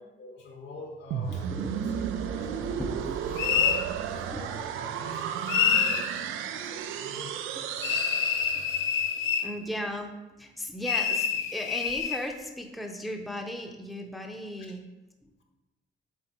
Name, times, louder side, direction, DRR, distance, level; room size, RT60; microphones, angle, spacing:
voice 1, 0.0-2.0 2.3-3.0 3.6-7.4 7.8-7.9 8.6-9.7, left 3 dB, 65° left, 2 dB, 1.4 m, -48 dB
sound 1, 1.1-9.0, right 8 dB, 90° right, 0.5 m, -33 dB
voice 2, 1.3-2.2 2.6-3.2 3.6-3.7 4.0-4.5 5.9-6.3 7.5-7.7 8.5-8.7 9.4-14.8 15.2-15.4, equal, ahead, 2 dB, 0.7 m, -37 dB
sound 2, 3.4-3.8 5.5-6.1 7.8-9.5 10.8-12.2, left 7 dB, 80° left, 0.6 m, -26 dB
8.0 x 3.7 x 4.4 m, 1.1 s
cardioid pair, 90°, 20 cm